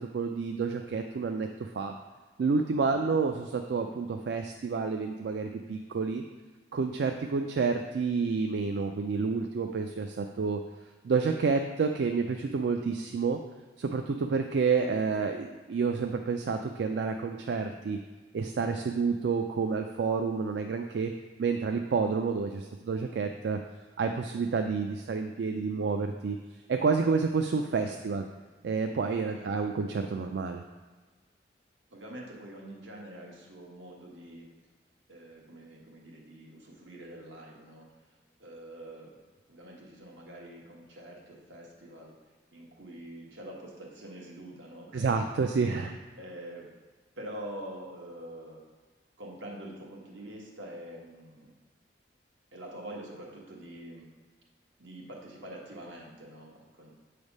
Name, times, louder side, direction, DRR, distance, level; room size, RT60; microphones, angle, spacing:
voice 1, 0.0-1.9 2.4-6.2 6.7-10.6 11.0-13.4 13.8-18.0 18.3-21.1 21.4-23.6 24.0-26.4 26.7-28.3 28.6-30.6 44.9-46.0, right 5 dB, 65° right, 5 dB, 0.3 m, -29 dB
voice 2, 31.9-34.5 35.1-37.9 38.4-39.2 39.5-42.1 42.5-45.3 46.2-46.7 47.2-48.6 49.2-51.5 52.5-54.1 54.8-56.9, right 1 dB, 80° right, -2 dB, 1.4 m, -45 dB
7.0 x 3.4 x 5.3 m, 1.3 s
head